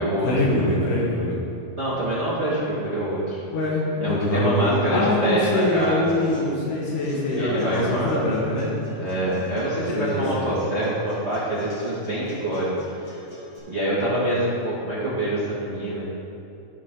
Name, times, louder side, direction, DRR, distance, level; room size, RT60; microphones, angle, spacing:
voice 1, 0.0-1.4 3.5-8.7 10.0-10.6, left 1 dB, 80° left, -5 dB, 2.7 m, -24 dB
voice 2, 1.8-3.4 4.0-6.4 7.3-8.3 9.0-12.7 13.7-16.1, right 1 dB, 30° right, -10 dB, 1.4 m, -26 dB
Acoustic guitar, 5.6-13.6, left 1 dB, 50° left, 3.1 m, -43 dB
15.0 x 4.9 x 3.8 m, 2.7 s
omnidirectional pair, 3.7 m